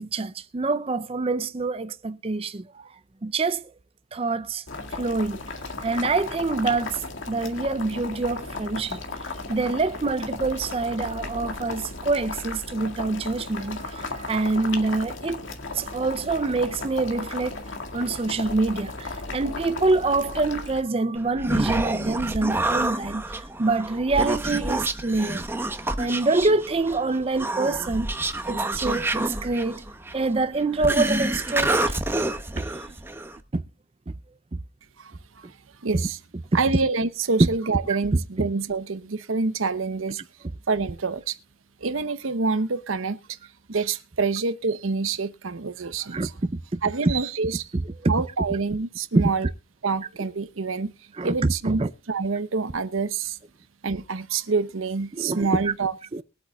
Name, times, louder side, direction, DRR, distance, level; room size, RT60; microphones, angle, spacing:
voice 1, 0.0-2.9 3.2-3.7 4.1-4.6 4.9-5.4 5.8-25.4 26.0-28.1 28.5-29.8 30.1-32.0 32.5-33.0 33.5-33.6 34.1-34.2 34.5-34.6 35.9-36.0 36.5-36.6 46.1-47.1 47.7-48.1 49.1-49.3 51.2-51.9 55.1-55.7 56.1-56.2, right 3 dB, 30° right, 0.5 m, -26 dB
Boiling, 4.7-20.8, left 3 dB, 70° left, 2.0 m, -35 dB
Human voice, 21.2-33.4, right 2 dB, 10° right, 0.8 m, -28 dB
voice 2, 35.0-35.6 35.8-36.2 36.5-40.2 40.7-41.4 41.8-43.4 43.7-46.3 46.8-47.7 48.1-49.5 49.8-50.9 51.2-51.8 52.1-53.4 53.8-55.9, right 4 dB, 85° right, 0.8 m, -27 dB
22.5 x 8.3 x 2.3 m
head